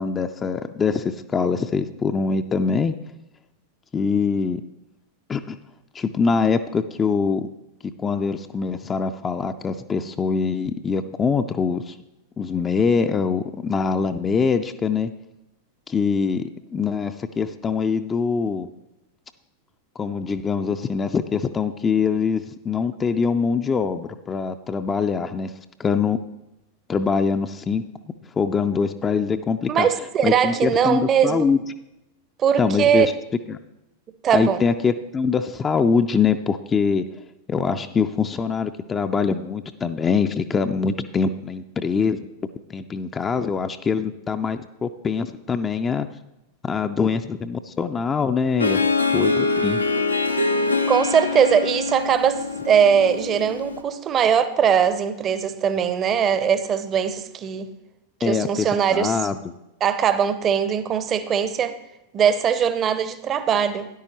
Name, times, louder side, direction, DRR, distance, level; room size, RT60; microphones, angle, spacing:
voice 1, 0.0-2.9 3.9-4.6 5.3-5.6 5.9-7.5 8.0-11.9 12.4-15.1 15.9-18.7 20.0-25.5 25.8-26.2 26.9-27.8 28.4-29.9 30.2-31.6 32.6-33.1 33.5-33.6 34.3-37.0 37.5-42.2 42.7-46.1 46.6-48.9 49.1-49.8 58.2-59.4, left 5 dB, 20° left, 8 dB, 0.4 m, -23 dB
voice 2, 29.7-31.5 32.4-33.1 34.2-34.6 50.9-57.7 58.2-59.2 59.8-61.8 62.1-63.9, right 8 dB, 30° right, 13 dB, 0.7 m, -20 dB
Harp, 48.6-53.8, left 3 dB, 85° left, 0.6 m, -24 dB
13.0 x 10.0 x 3.0 m, 0.92 s
figure-of-eight pair, 90°, 0 cm